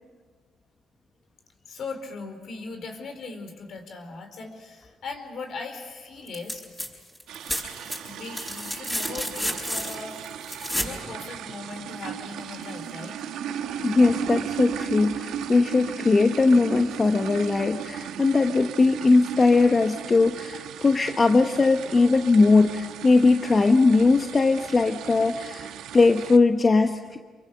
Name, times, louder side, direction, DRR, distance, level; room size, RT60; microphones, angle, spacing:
voice 1, 1.7-6.6 8.0-10.2 10.5-13.2, left 4 dB, 60° left, 6 dB, 4.4 m, -39 dB
sound 1, 6.3-6.9 7.2-11.0 12.6-12.7, equal, 10° left, 7.9 m, -31 dB
sound 2, 7.3-26.4, right 9 dB, 85° right, 1.2 m, -36 dB
voice 2, 13.8-27.2, left 3 dB, 30° left, 6 dB, 1.1 m, -20 dB
28.0 x 23.5 x 6.8 m, 1.5 s
cardioid pair, 90°, 0 cm